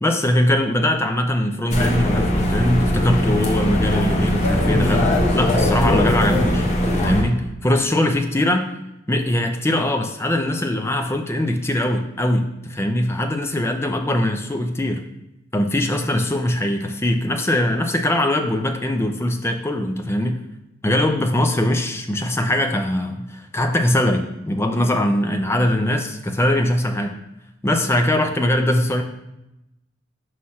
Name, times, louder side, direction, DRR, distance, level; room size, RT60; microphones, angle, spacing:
voice 1, 0.0-6.7 6.9-8.7 9.1-15.0 15.5-20.4 20.8-27.2 27.6-29.0, left 1 dB, 15° left, 4 dB, 0.5 m, -21 dB
sound 1, 1.7-7.2, left 1 dB, 35° left, 1.0 m, -20 dB
5.8 x 3.2 x 5.6 m, 0.89 s
head